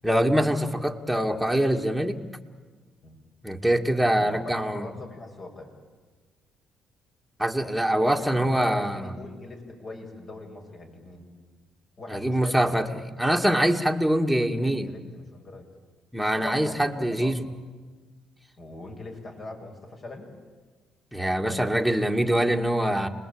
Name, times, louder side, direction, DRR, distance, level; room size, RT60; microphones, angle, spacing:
voice 1, 0.0-2.2 3.4-4.8 7.4-9.1 12.1-12.9 13.2-14.9 16.1-17.4 21.1-23.1, right 1 dB, ahead, 1 dB, 2.2 m, -24 dB
voice 2, 4.2-5.7 8.2-11.3 12.0-12.9 14.4-15.7 16.3-17.3 18.6-20.3 21.4-22.3, left 2 dB, 45° left, 2 dB, 7.3 m, -41 dB
30.0 x 21.0 x 8.9 m, 1.4 s
supercardioid pair, 75°, 0 cm